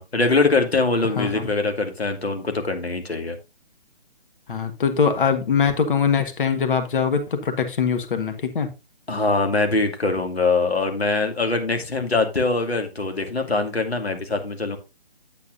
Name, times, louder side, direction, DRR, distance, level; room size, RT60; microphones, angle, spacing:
voice 1, 0.0-3.4 9.1-14.8, left 3 dB, 75° left, 2.2 m, -23 dB
voice 2, 1.2-1.5 4.5-8.7, left 6 dB, 55° left, 1.4 m, -22 dB
8.8 x 8.4 x 2.5 m
figure-of-eight pair, 145°, 31 cm